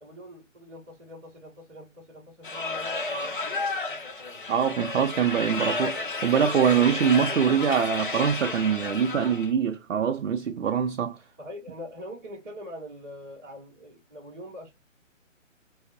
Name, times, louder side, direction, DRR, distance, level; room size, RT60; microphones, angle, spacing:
voice 1, 0.0-4.4 11.4-14.7, left 1 dB, 15° right, 0.7 m, -43 dB
sound 1, 2.4-9.5, left 3 dB, 40° left, 0.7 m, -32 dB
voice 2, 4.5-11.2, right 7 dB, 65° right, 0.5 m, -24 dB
4.9 x 2.0 x 2.5 m
figure-of-eight pair, 145°, 39 cm